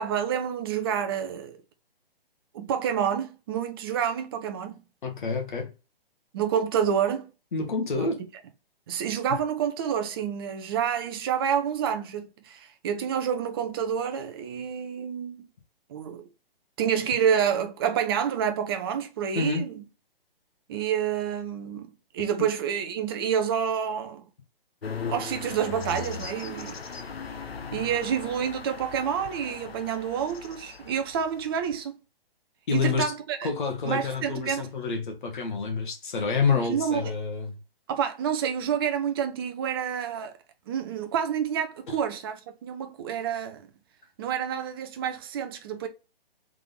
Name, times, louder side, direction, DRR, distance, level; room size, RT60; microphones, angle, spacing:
voice 1, 0.0-1.6 2.5-4.8 6.3-7.3 7.9-8.1 8.9-15.5 15.9-16.3 16.8-19.8 20.7-24.3 25.1-26.8 27.7-31.9 32.7-33.5 33.8-34.7 36.7-37.1 37.9-40.3 40.7-43.7 44.2-45.9, right 8 dB, 25° right, 0.6 m, -28 dB
voice 2, 5.0-5.7 7.5-8.2 19.3-19.7 32.7-33.0 33.4-37.6 41.9-42.0, left 5 dB, 55° left, 1.4 m, -28 dB
sound 1, 24.8-31.8, left 5 dB, 85° left, 0.7 m, -38 dB
3.8 x 3.4 x 3.7 m
figure-of-eight pair, 130°, 30 cm